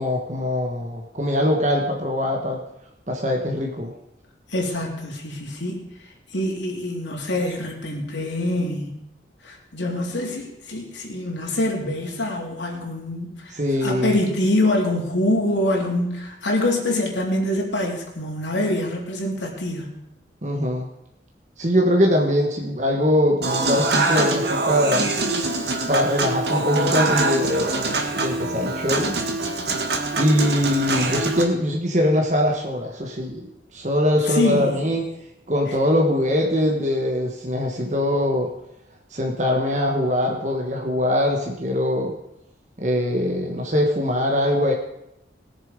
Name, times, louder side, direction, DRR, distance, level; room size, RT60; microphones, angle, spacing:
voice 1, 0.0-2.6 3.1-3.9 13.5-14.1 20.4-20.9 21.6-25.1 25.9-27.9 28.1-29.2 30.2-35.0 35.5-38.5 39.1-42.1 42.8-44.7, left 1 dB, 40° right, 0 dB, 1.5 m, -22 dB
voice 2, 4.5-5.9 6.3-9.0 9.4-19.9 34.2-34.8, left 1 dB, 90° left, -1 dB, 3.1 m, -25 dB
Human voice / Acoustic guitar / Piano, 23.4-31.4, right 2 dB, 65° right, 1.8 m, -24 dB
20.0 x 7.2 x 5.2 m, 0.82 s
head